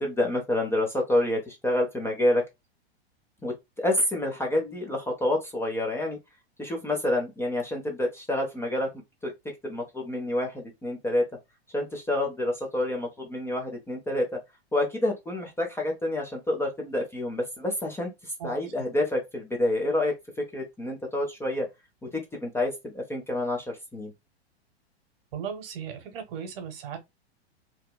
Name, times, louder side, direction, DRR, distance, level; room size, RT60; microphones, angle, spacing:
voice 1, 0.0-2.4 3.4-6.2 6.6-8.9 9.2-9.3 9.6-11.2 11.7-14.4 14.7-21.7 22.0-24.1, left 1 dB, 10° left, 0.5 m, -28 dB
voice 2, 25.3-27.0, right 7 dB, 60° right, 1.0 m, -36 dB
2.8 x 2.0 x 2.2 m
hypercardioid pair, 105°, 32 cm